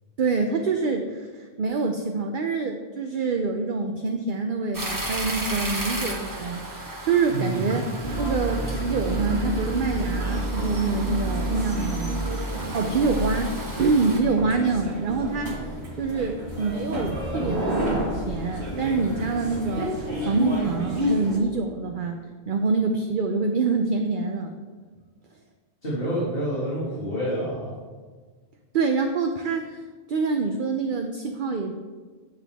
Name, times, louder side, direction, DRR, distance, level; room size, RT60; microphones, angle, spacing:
voice 1, 0.2-7.9 8.2-12.2 12.7-15.7 16.0-24.5 28.7-29.8 30.1-31.7, right 4 dB, 55° right, 4 dB, 0.7 m, -26 dB
sound 1, 4.7-14.2, right 1 dB, 20° right, 1.1 m, -35 dB
voice 2, 7.3-7.8 25.8-27.7, right 1 dB, 60° left, -9 dB, 2.6 m, -28 dB
sound 2, 8.0-21.4, equal, 80° right, 2.2 m, -29 dB
10.0 x 7.7 x 3.5 m, 1.4 s
omnidirectional pair, 1.1 m